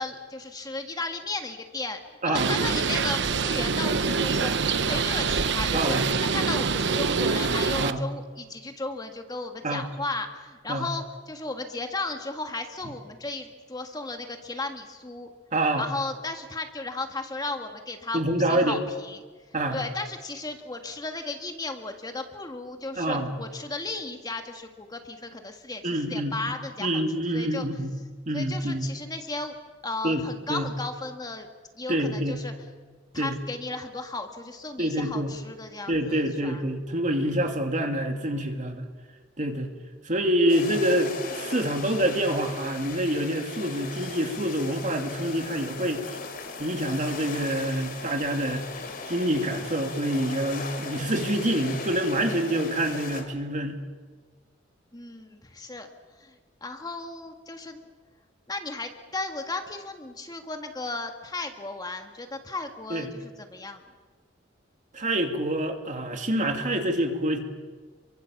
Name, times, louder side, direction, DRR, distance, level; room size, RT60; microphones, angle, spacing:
voice 1, 0.0-4.5 4.8-15.3 15.8-18.2 18.5-19.2 19.7-27.0 27.3-27.6 28.3-29.5 29.8-31.5 31.8-32.7 33.1-36.6 37.2-37.3 54.9-55.9 56.2-56.3 56.6-57.9 58.5-63.8, left 3 dB, 20° left, 5 dB, 1.7 m, -35 dB
voice 2, 2.2-2.5 5.7-6.1 7.8-8.0 9.6-9.9 10.7-10.8 15.5-15.9 18.1-18.8 19.5-19.9 23.0-23.3 25.8-26.4 26.8-28.0 28.3-28.9 30.0-30.2 30.5-30.7 31.9-32.4 33.2-33.3 34.8-35.3 35.9-38.9 39.4-39.7 40.0-46.1 46.6-48.6 49.1-53.8 62.9-63.1 64.9-67.4, right 1 dB, 40° right, 4 dB, 2.7 m, -26 dB
Bird, 2.3-7.9, right 5 dB, 65° right, 1.0 m, -25 dB
sound 1, 40.5-53.2, left 3 dB, 50° left, 3.3 m, -38 dB
28.5 x 24.0 x 7.2 m, 1.4 s
head